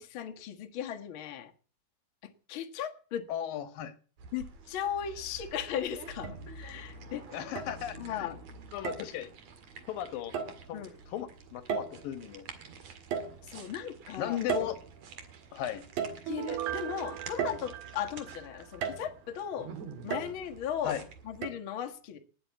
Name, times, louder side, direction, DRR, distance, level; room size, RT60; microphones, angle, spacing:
voice 1, 0.0-1.5 2.5-3.2 4.3-7.2 8.0-8.4 10.7-10.9 13.5-14.4 16.3-19.7 20.0-21.0 21.2-22.2, left 9 dB, 55° left, 6 dB, 1.5 m, -37 dB
voice 2, 3.3-3.9 7.3-8.3 8.7-9.3 9.9-10.3 10.7-12.5 14.2-14.8 15.5-15.8 20.8-21.1, left 11 dB, 70° left, 13 dB, 2.7 m, -36 dB
sound 1, 4.2-21.5, right 4 dB, 50° right, 2.8 m, -49 dB
sound 2, 5.1-5.3 6.2-6.9 7.6-8.2 8.8-9.2 10.3-10.7 11.7-12.2 13.1-13.8 14.5-15.3 16.0-16.7 17.4-18.1 18.8-19.3 20.1-20.7 21.4-21.5, right 6 dB, 65° right, 3.7 m, -36 dB
Piano, 16.3-19.0 19.3-19.4, right 12 dB, 90° right, 3.3 m, -39 dB
19.5 x 8.0 x 8.3 m, 0.41 s
omnidirectional pair, 4.4 m